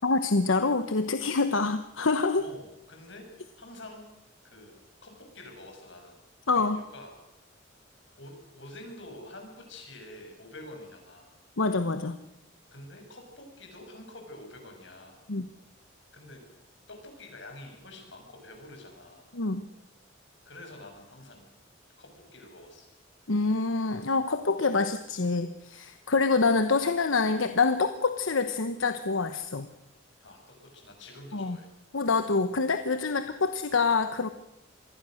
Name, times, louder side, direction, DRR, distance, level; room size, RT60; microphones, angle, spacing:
voice 1, 0.0-2.4 6.5-6.8 11.6-12.2 15.3-15.5 19.3-19.7 23.3-29.7 31.3-31.6 31.9-34.3, left 4 dB, 90° left, 9 dB, 1.1 m, -26 dB
voice 2, 2.4-4.1 4.4-6.2 6.5-7.1 8.2-11.3 12.7-15.1 16.1-16.4 16.9-19.2 20.4-21.5 22.0-22.9 26.1-26.2 30.2-31.7 33.1-33.3, left 1 dB, 65° left, 3 dB, 6.8 m, -47 dB
26.5 x 20.5 x 6.5 m, 0.85 s
head